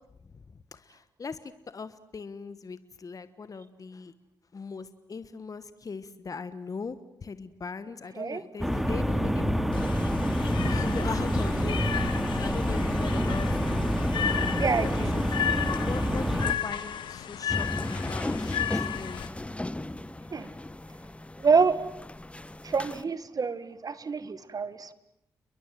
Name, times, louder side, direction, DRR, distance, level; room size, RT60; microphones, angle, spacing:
voice 1, 0.7-4.1 4.5-9.9 10.4-14.0 14.3-15.3 15.7-19.3, left 5 dB, 45° left, 13 dB, 1.4 m, -40 dB
sound 1, 8.6-16.5, equal, ahead, 2.6 m, -27 dB
sound 2, 9.7-19.3, left 9 dB, 75° left, 1.7 m, -34 dB
voice 2, 14.6-15.1 17.5-17.6 20.3-20.5 21.4-21.8 22.6-24.9, right 5 dB, 50° right, 15 dB, 1.8 m, -27 dB
sound 3, 17.5-23.0, left 1 dB, 15° left, 1.2 m, -35 dB
30.0 x 22.0 x 7.7 m, 0.81 s
supercardioid pair, 45°, 8 cm